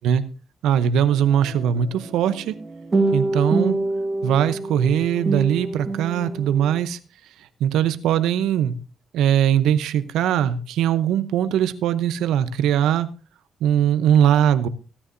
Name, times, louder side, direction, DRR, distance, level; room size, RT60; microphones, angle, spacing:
voice 1, 0.6-2.6 3.1-3.8 4.2-7.0 7.6-8.8 9.1-13.1 13.6-14.7, right 9 dB, 85° right, 12 dB, 0.7 m, -20 dB
sound 1, 1.1-6.8, right 2 dB, 30° right, 1.7 m, -26 dB
16.0 x 9.7 x 2.6 m, 0.35 s
cardioid pair, 90°, 0 cm